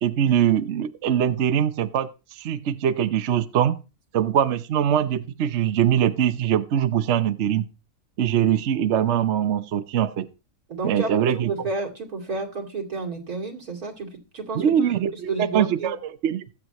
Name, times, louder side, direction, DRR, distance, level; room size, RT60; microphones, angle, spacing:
voice 1, 0.0-3.8 4.1-7.7 8.2-10.3 10.8-11.5 14.5-16.4, right 9 dB, 60° right, 11 dB, 1.0 m, -22 dB
voice 2, 10.7-14.9 15.3-15.9, right 3 dB, 90° right, 2 dB, 3.0 m, -31 dB
22.0 x 7.9 x 2.9 m, 0.30 s
omnidirectional pair, 1.5 m